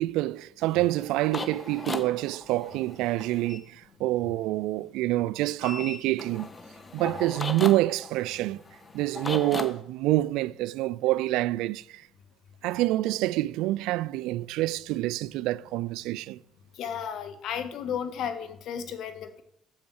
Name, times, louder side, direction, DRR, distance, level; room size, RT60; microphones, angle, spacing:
voice 1, 0.0-6.5 6.9-8.6 8.9-12.1 12.6-16.4, right 17 dB, 85° right, 0.3 m, -27 dB
sound 1, 0.6-3.6 5.6-9.7, left 3 dB, 30° left, 1.4 m, -38 dB
voice 2, 16.8-19.4, left 8 dB, 70° left, 1.4 m, -33 dB
8.8 x 7.0 x 7.8 m
cardioid pair, 95°, 0 cm